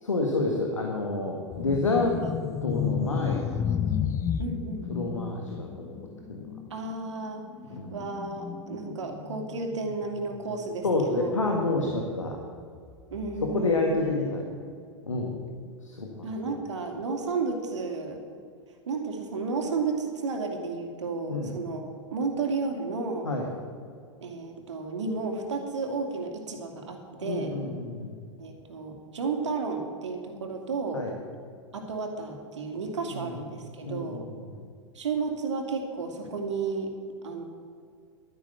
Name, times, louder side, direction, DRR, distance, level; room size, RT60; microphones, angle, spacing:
voice 1, 0.0-2.2 2.6-3.8 4.9-6.0 6.3-6.5 7.7-8.0 10.8-12.4 13.4-14.4 15.1-15.3 15.8-16.3 21.3-21.5 23.2-23.5 27.2-28.1 30.9-31.1 33.1-33.3 33.9-34.7, left 2 dB, 80° left, 1 dB, 1.8 m, -29 dB
sound 1, 1.5-11.5 11.8-12.0 12.8-13.8, left 8 dB, 20° left, 0.5 m, -33 dB
voice 2, 4.4-5.2 6.7-7.4 7.9-11.3 13.1-13.9 16.2-18.2 18.9-23.3 24.2-27.5 28.4-31.0 31.7-34.3 34.9-36.9 37.2-37.4, right 4 dB, 65° right, 4 dB, 2.4 m, -32 dB
12.0 x 10.0 x 7.2 m, 2.2 s
figure-of-eight pair, 100°, 16 cm